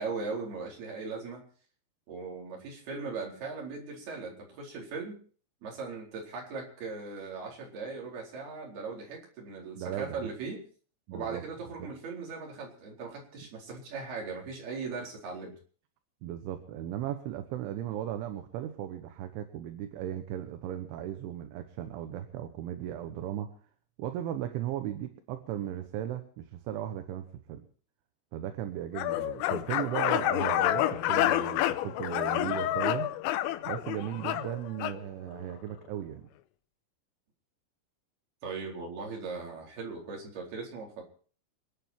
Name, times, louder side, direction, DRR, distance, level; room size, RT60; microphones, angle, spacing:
voice 1, 0.0-1.4 2.1-5.2 5.6-10.6 11.1-15.5 38.4-41.0, right 4 dB, 55° right, -2 dB, 6.0 m, -39 dB
voice 2, 9.8-10.2 11.1-11.4 11.8-11.9 16.2-23.5 24.0-27.7 28.3-33.1 33.7-36.3, right 11 dB, 75° right, 7 dB, 3.5 m, -36 dB
sound 1, 28.9-35.0, left 13 dB, 90° left, 3.5 m, -29 dB
27.5 x 9.5 x 4.5 m, 0.44 s
omnidirectional pair, 5.7 m